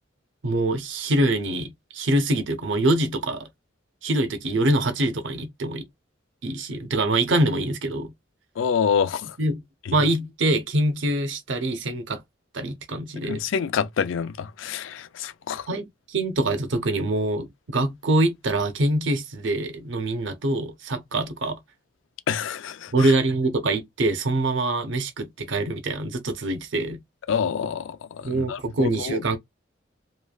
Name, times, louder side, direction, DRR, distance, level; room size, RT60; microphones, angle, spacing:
voice 1, 0.4-3.5 4.0-5.8 6.4-8.1 9.4-9.6 9.9-12.2 12.5-13.4 15.7-21.6 22.9-27.0 28.2-29.4, right 1 dB, 70° right, 0.7 m, -24 dB
voice 2, 8.6-9.4 9.9-10.0 13.2-15.7 22.3-23.1 27.3-29.2, left 7 dB, 75° left, 0.4 m, -27 dB
3.1 x 2.4 x 2.3 m
head